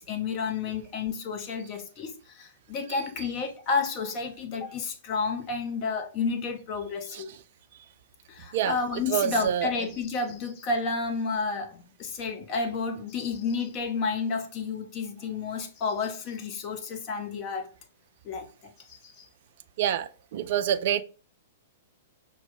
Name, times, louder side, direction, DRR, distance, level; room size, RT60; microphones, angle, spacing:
voice 1, 0.0-7.3 8.3-17.7 18.2-19.3, left 4 dB, 35° left, 0.6 m, -31 dB
voice 2, 9.1-9.7 19.8-21.0, right 10 dB, 50° right, 0.3 m, -26 dB
5.8 x 2.0 x 2.4 m
figure-of-eight pair, 105°, 0 cm